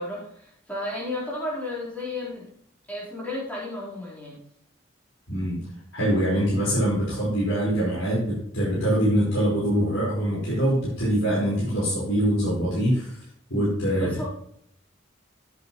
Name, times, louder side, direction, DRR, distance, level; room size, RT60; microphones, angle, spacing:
voice 1, 0.0-2.5 2.9-4.4 13.9-14.2, left 1 dB, 5° left, -7 dB, 4.1 m, -33 dB
voice 2, 5.3-5.6 5.9-13.2 13.5-14.2, right 1 dB, 80° left, -8 dB, 4.7 m, -24 dB
13.0 x 8.5 x 3.1 m, 0.70 s
head